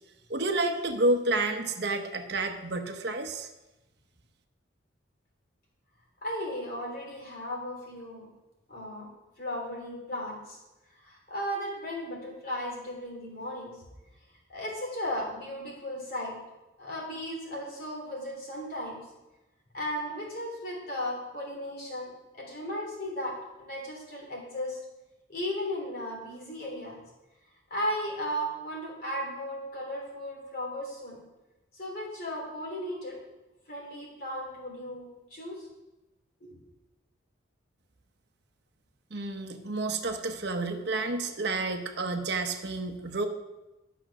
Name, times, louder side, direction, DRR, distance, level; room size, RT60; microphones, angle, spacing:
voice 1, 0.3-3.5 39.1-43.3, right 2 dB, 55° right, 5 dB, 0.9 m, -30 dB
voice 2, 6.2-8.2 8.7-9.1 9.4-10.6 10.9-13.8 14.5-16.3 16.8-19.0 19.7-24.8 25.3-26.9 27.7-31.2 31.7-33.2 33.7-35.7 36.4-36.6, equal, 50° left, -2 dB, 3.3 m, -36 dB
11.5 x 6.0 x 6.0 m, 1.0 s
head